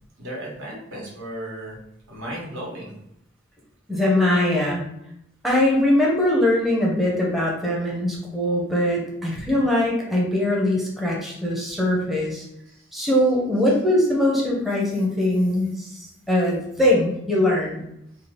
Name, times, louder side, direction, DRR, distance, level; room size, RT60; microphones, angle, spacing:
voice 1, 0.2-1.8 2.1-2.9 12.4-12.8, right 1 dB, 75° right, -4 dB, 1.1 m, -35 dB
voice 2, 3.9-4.8 5.4-12.4 12.9-17.8, left 1 dB, ahead, -4 dB, 0.6 m, -21 dB
2.7 x 2.3 x 3.1 m, 0.80 s
head